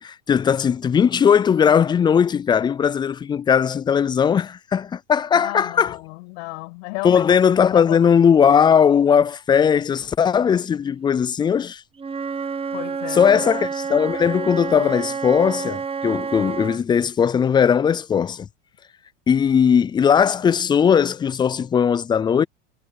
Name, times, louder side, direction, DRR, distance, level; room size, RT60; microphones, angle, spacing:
voice 1, 0.0-5.9 7.0-11.8 13.1-18.5 19.3-22.4, left 7 dB, 15° left, 0.3 m, -18 dB
voice 2, 5.3-7.2 7.6-8.1 12.7-13.4, left 30 dB, 65° left, 6.5 m, -33 dB
Wind instrument woodwind instrument, 12.0-16.8, right 5 dB, 15° right, 1.4 m, -29 dB
hypercardioid pair, 105°, 37 cm